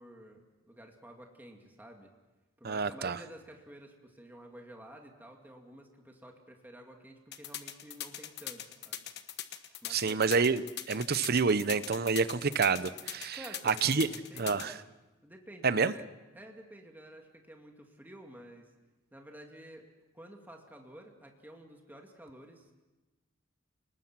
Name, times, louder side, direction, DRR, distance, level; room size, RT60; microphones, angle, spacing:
voice 1, 0.0-2.1 2.6-9.1 9.8-10.2 13.3-14.9 15.2-18.7 19.1-22.7, right 1 dB, 10° right, 2 dB, 2.2 m, -51 dB
voice 2, 2.6-3.2 9.9-10.6 10.9-13.4 13.7-14.1 14.4-14.7 15.6-15.9, right 5 dB, 50° right, 15 dB, 0.8 m, -28 dB
sound 1, 7.3-14.7, left 11 dB, 55° left, 1.3 m, -41 dB
30.0 x 19.5 x 6.0 m, 1.1 s
head